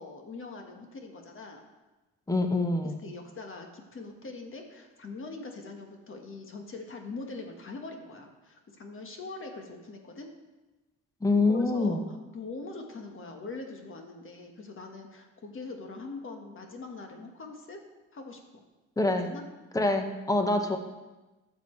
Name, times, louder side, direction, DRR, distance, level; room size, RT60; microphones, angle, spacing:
voice 1, 0.0-1.6 3.0-10.3 11.5-12.0 12.3-17.8 18.1-18.6 19.2-19.5, left 3 dB, 45° left, 3 dB, 1.5 m, -42 dB
voice 2, 2.3-3.0 11.2-12.1 19.0-19.3 19.7-20.8, left 2 dB, 10° left, 5 dB, 1.0 m, -25 dB
13.0 x 7.0 x 3.2 m, 1.1 s
cardioid pair, 90°, 30 cm